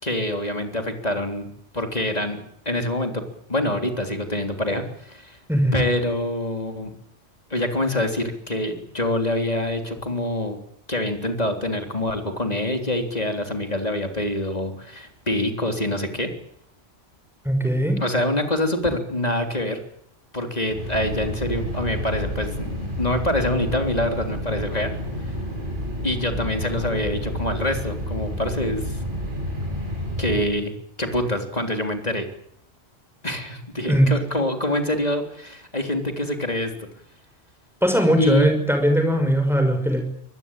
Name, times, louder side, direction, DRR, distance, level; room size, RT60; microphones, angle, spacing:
voice 1, 0.0-1.5 1.7-3.2 3.5-5.4 5.7-6.9 7.5-10.6 10.9-16.3 18.0-19.8 20.3-24.9 25.2-25.3 26.0-29.1 30.2-30.7 31.0-32.3 33.2-36.9 38.2-38.6, left 1 dB, 35° left, 5 dB, 3.6 m, -25 dB
voice 2, 17.4-18.0 33.9-34.1 37.8-40.0, equal, ahead, 6 dB, 6.0 m, -19 dB
sound 1, 20.7-30.5, equal, 40° right, 8.4 m, -30 dB
24.5 x 20.0 x 9.0 m, 0.69 s
omnidirectional pair, 1.3 m